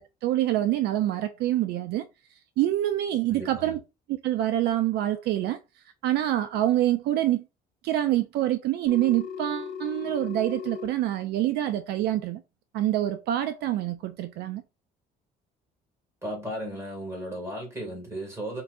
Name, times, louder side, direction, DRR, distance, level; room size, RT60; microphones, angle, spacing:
voice 1, 0.0-2.1 2.6-3.8 4.2-5.6 6.0-7.4 7.8-12.4 12.7-14.6, right 13 dB, 75° right, 0.5 m, -26 dB
voice 2, 3.3-3.8 16.2-18.6, right 1 dB, 15° right, 2.2 m, -35 dB
Telephone, 8.9-10.9, left 7 dB, 70° left, 1.5 m, -37 dB
4.5 x 2.7 x 2.5 m
cardioid pair, 110°, 17 cm